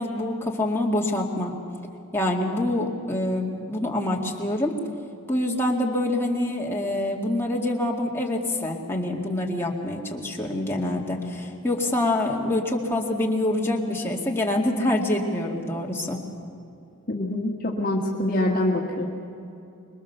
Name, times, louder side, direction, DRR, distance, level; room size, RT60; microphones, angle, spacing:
voice 1, 0.0-1.5 2.1-4.7 5.3-16.2, left 1 dB, 10° left, -2 dB, 2.1 m, -26 dB
voice 2, 17.1-19.1, left 1 dB, 40° left, -4 dB, 1.8 m, -25 dB
25.5 x 21.5 x 7.0 m, 2.7 s
head